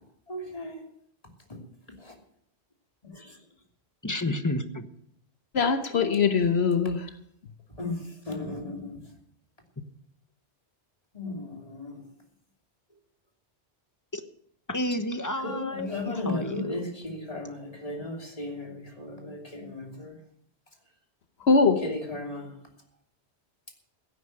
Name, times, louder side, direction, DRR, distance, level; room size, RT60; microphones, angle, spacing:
voice 1, 0.3-0.9 1.5-1.6 2.0-2.1 3.0-3.4 7.8-9.0 11.1-12.0 15.4-20.2 21.8-22.5, left 2 dB, 30° left, 3.1 m, -35 dB
voice 2, 4.0-4.9 14.1-14.2 14.7-16.7, left 1 dB, 15° left, 1.1 m, -31 dB
voice 3, 5.5-7.1 21.5-21.9, left 5 dB, 70° left, 1.2 m, -22 dB
16.5 x 9.3 x 6.6 m
omnidirectional pair, 1.1 m